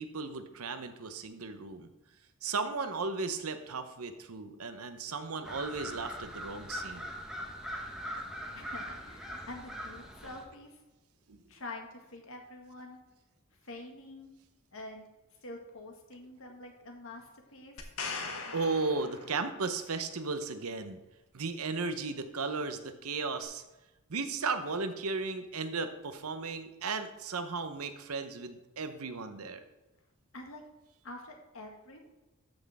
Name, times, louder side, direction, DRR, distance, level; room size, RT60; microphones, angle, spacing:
voice 1, 0.0-1.9 2.4-7.1 11.3-11.4 18.5-21.0 21.3-23.6 24.1-29.6, right 4 dB, 85° right, 9 dB, 0.9 m, -35 dB
sound 1, 5.4-10.4, equal, 5° right, 1.1 m, -41 dB
voice 2, 8.5-10.8 11.5-13.0 13.6-14.3 14.7-15.1 15.4-17.9 30.3-30.6 31.0-32.0, left 2 dB, 65° left, 2 dB, 1.8 m, -46 dB
sound 2, 17.8-19.8 23.4-23.5, left 4 dB, 85° left, 1.3 m, -40 dB
13.0 x 6.2 x 3.6 m, 1.0 s
head